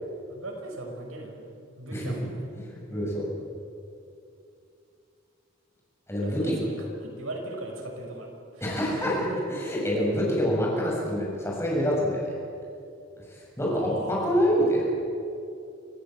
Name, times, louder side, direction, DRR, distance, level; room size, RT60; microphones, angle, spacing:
voice 1, 0.3-1.4 1.8-2.4 6.2-9.4 13.6-14.9, right 2 dB, 85° right, 1 dB, 6.0 m, -38 dB
voice 2, 2.7-3.3 6.1-6.6 8.6-9.1 9.7-12.3 13.6-14.8, equal, 15° left, -4 dB, 7.2 m, -26 dB
26.0 x 15.5 x 9.3 m, 2.5 s
head